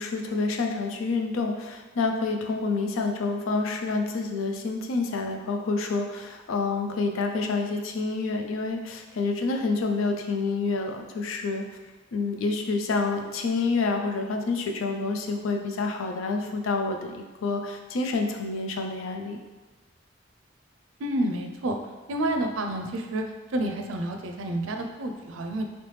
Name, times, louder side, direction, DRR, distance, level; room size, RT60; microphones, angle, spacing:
voice 1, 0.0-11.6 12.1-19.4, left 3 dB, 90° left, 3 dB, 0.4 m, -28 dB
voice 2, 21.0-21.8 22.1-23.2 23.5-25.6, right 1 dB, 80° right, 4 dB, 0.4 m, -29 dB
3.2 x 3.0 x 3.1 m, 1.2 s
head